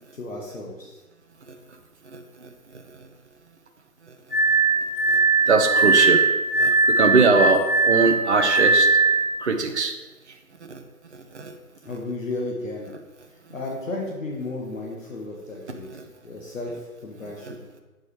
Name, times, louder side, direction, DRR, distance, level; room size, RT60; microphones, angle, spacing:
voice 1, 0.2-1.0 11.8-12.9 13.5-15.9 16.2-16.8 17.0-17.6, left 2 dB, 55° left, -2 dB, 1.7 m, -33 dB
voice 2, 2.1-2.5 2.9-3.1 5.0-5.2 5.4-6.3 6.6-8.9 9.4-9.9 10.7-10.8 11.1-11.5 15.9-16.0 17.4-17.8, right 4 dB, 45° right, 5 dB, 0.8 m, -22 dB
Glass, 4.3-9.3, right 3 dB, 35° left, 0.8 m, -20 dB
8.0 x 5.2 x 4.8 m, 1.2 s
figure-of-eight pair, 145°, 46 cm